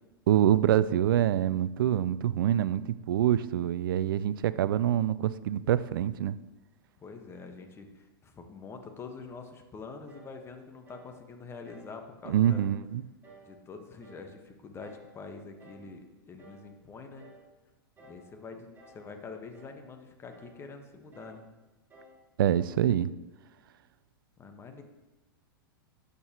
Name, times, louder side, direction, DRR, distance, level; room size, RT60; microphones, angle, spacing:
voice 1, 0.3-6.4 12.3-13.0 22.4-23.1, right 11 dB, 65° right, 16 dB, 0.4 m, -25 dB
voice 2, 7.0-12.7 13.4-17.3 18.1-21.5 24.4-24.8, left 4 dB, 20° left, 5 dB, 1.3 m, -45 dB
sound 1, 10.1-10.4 10.9-11.1 11.7-12.0 12.4-12.7 13.2-13.5 14.0-14.3 14.8-15.1 15.6-15.9 16.4-16.7 17.2-17.5 18.0-18.3 18.8-19.1 19.5-19.8 20.3-20.6 21.1-21.4 21.9-22.2, right 2 dB, 15° right, 3.3 m, -55 dB
12.5 x 8.2 x 3.0 m, 1.1 s
hypercardioid pair, 105°, 12 cm